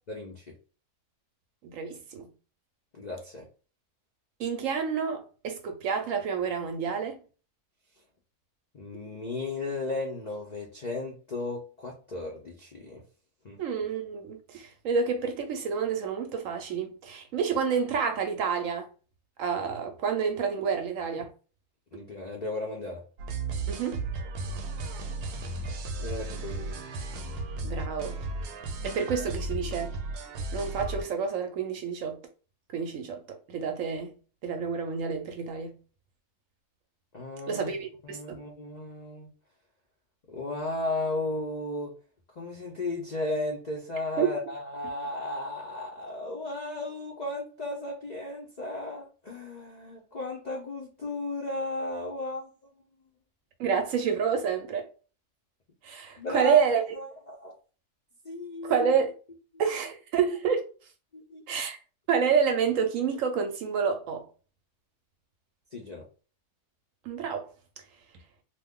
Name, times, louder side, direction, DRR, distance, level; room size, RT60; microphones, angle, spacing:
voice 1, 0.1-0.6 2.9-3.5 8.7-13.0 13.4-13.6 21.9-23.0 26.0-26.8 37.1-37.7 38.0-39.3 40.3-41.9 42.3-52.5 56.2-56.6 56.9-57.5 58.2-58.9 59.5-59.6 61.1-61.4 65.7-66.0, left 2 dB, 80° left, 0.3 m, -35 dB
voice 2, 1.6-2.3 4.4-7.2 13.6-18.9 19.4-21.3 23.7-24.0 27.6-28.2 28.8-29.9 30.5-32.2 32.7-33.2 33.5-34.1 34.4-35.8 37.5-38.4 44.2-44.3 53.6-54.9 55.8-56.8 58.6-59.1 59.6-60.7 61.5-61.8 62.1-64.2 67.1-67.5, right 6 dB, 70° right, 0.9 m, -28 dB
sound 1, 23.2-31.0, right 2 dB, 90° right, 1.1 m, -35 dB
2.6 x 2.3 x 3.5 m
omnidirectional pair, 1.6 m